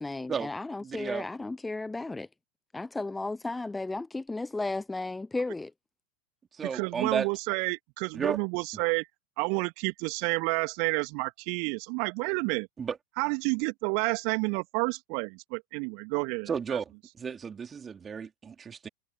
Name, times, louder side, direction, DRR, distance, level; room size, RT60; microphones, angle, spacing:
voice 1, 0.0-2.3 2.7-5.7, left 2 dB, 10° left, 0.8 m, -34 dB
voice 2, 0.8-1.2 6.6-7.3 8.1-8.4 12.8-13.0 16.5-16.8 17.2-18.9, right 6 dB, 20° right, 4.5 m, -32 dB
voice 3, 6.6-9.1 9.4-12.7 13.2-16.8, right 40 dB or more, 45° right, 3.1 m, -30 dB
figure-of-eight pair, 90°, 0 cm